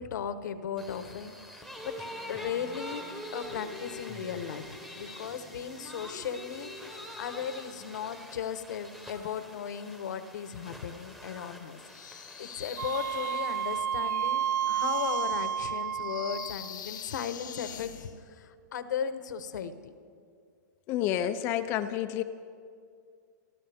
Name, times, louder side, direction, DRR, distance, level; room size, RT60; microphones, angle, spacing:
voice 1, 0.0-3.0 3.3-11.8 12.1-17.9 18.3-19.9, left 7 dB, 65° left, 11 dB, 1.1 m, -37 dB
sound 1, 0.8-15.0, equal, ahead, 1.0 m, -45 dB
sound 2, 11.8-18.2, left 9 dB, 85° left, 1.4 m, -45 dB
Wind instrument woodwind instrument, 12.8-16.7, right 8 dB, 65° right, 0.7 m, -31 dB
voice 2, 20.9-22.2, left 11 dB, 20° left, 10 dB, 0.4 m, -29 dB
29.0 x 14.5 x 3.5 m, 2.3 s
hypercardioid pair, 170°, 10 cm